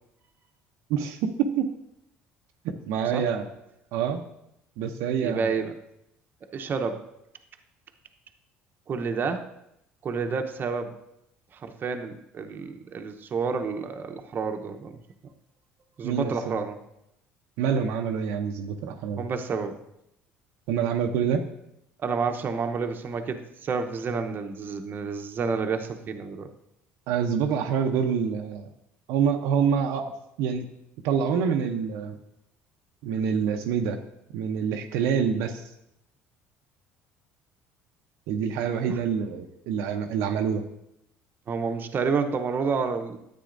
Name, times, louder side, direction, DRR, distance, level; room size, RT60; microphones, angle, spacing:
voice 1, 0.9-1.7 2.6-3.5 3.9-4.2 4.8-5.5 16.0-16.6 17.6-19.2 20.7-21.4 27.1-28.7 29.1-30.1 30.4-30.7 31.0-32.2 33.0-34.0 34.3-35.6 38.3-40.6, right 7 dB, 80° right, 4 dB, 0.6 m, -26 dB
voice 2, 5.2-5.7 6.5-7.0 8.9-9.4 10.0-10.9 11.5-15.0 16.0-16.8 19.2-19.8 22.0-26.5 38.9-39.0 41.5-43.2, right 5 dB, 40° right, 6 dB, 0.8 m, -29 dB
10.0 x 8.4 x 2.6 m, 0.81 s
supercardioid pair, 85°, 5 cm